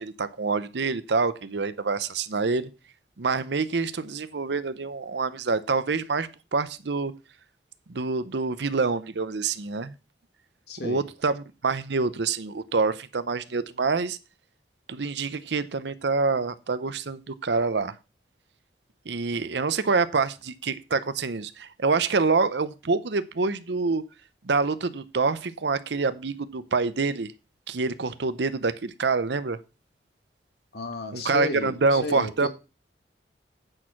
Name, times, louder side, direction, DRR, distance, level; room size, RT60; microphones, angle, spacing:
voice 1, 0.0-2.7 3.2-7.1 7.9-10.0 10.8-14.2 14.9-18.0 19.1-24.0 24.4-27.3 27.7-29.6 31.1-32.5, right 4 dB, 75° right, 0.7 m, -26 dB
voice 2, 10.7-11.0 30.7-32.5, left 3 dB, 60° left, 1.7 m, -33 dB
8.8 x 6.3 x 5.9 m
head